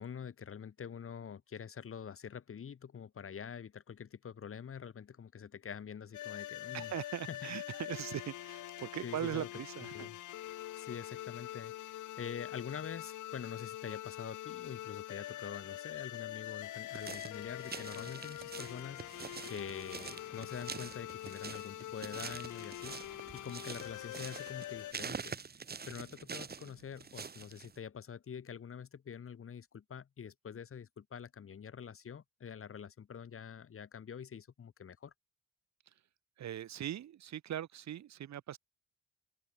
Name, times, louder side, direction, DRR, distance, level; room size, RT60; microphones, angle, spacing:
voice 1, 0.0-6.9 7.3-7.4 9.0-9.5 9.9-10.2 10.8-11.7 12.2-25.4 25.9-35.1, left 7 dB, 45° left, 2.4 m, -46 dB
sound 1, 6.1-24.9, left 14 dB, 80° left, 1.7 m, -44 dB
voice 2, 6.7-10.1 36.4-38.6, right 11 dB, 65° right, 1.8 m, -40 dB
sound 2, 16.9-27.8, right 5 dB, 30° right, 1.6 m, -46 dB
open air
cardioid pair, 90°, 30 cm